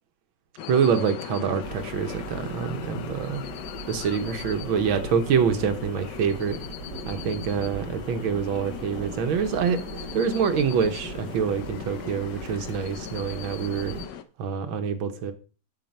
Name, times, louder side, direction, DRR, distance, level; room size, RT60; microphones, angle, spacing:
sound 1, 0.6-14.2, left 10 dB, 70° left, 1.2 m, -39 dB
voice 1, 0.7-3.4 3.9-6.6 7.0-13.9 14.4-15.3, right 6 dB, 75° right, 1.7 m, -26 dB
sound 2, 1.6-14.1, right 5 dB, 55° right, 2.3 m, -40 dB
9.0 x 5.9 x 5.3 m
omnidirectional pair, 2.3 m